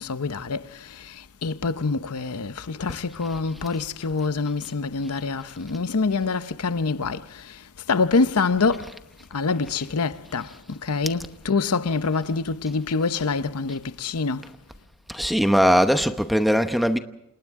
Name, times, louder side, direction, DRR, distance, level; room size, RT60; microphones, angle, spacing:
voice 1, 0.0-7.6 7.9-8.9 9.3-14.5, left 4 dB, 90° left, 0.8 m, -26 dB
voice 2, 15.1-17.0, equal, ahead, 0.9 m, -20 dB
29.0 x 28.0 x 3.7 m
head